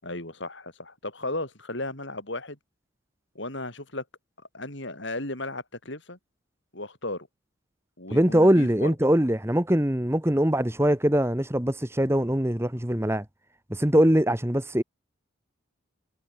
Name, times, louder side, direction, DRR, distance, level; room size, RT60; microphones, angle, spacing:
voice 1, 0.0-2.6 3.3-4.0 4.5-6.2 6.7-7.3 8.0-8.9, left 2 dB, 60° left, 6.5 m, -35 dB
voice 2, 8.1-13.2 13.7-14.8, equal, 10° right, 1.4 m, -22 dB
head